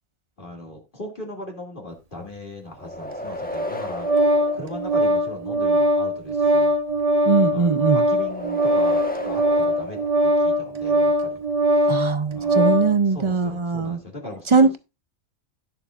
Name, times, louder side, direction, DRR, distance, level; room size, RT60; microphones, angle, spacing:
voice 1, 0.4-4.1 4.5-6.8 7.5-11.4 11.7-12.0 12.3-14.7, left 1 dB, 40° left, 2.5 m, -39 dB
sound 1, 2.8-5.5 8.1-10.8, left 1 dB, 5° left, 1.0 m, -34 dB
Organ, 3.5-12.9, equal, 30° right, 1.2 m, -21 dB
voice 2, 7.3-8.0 11.9-14.0 14.5-14.8, right 4 dB, 50° right, 0.3 m, -20 dB
17.5 x 7.1 x 2.4 m
omnidirectional pair, 1.4 m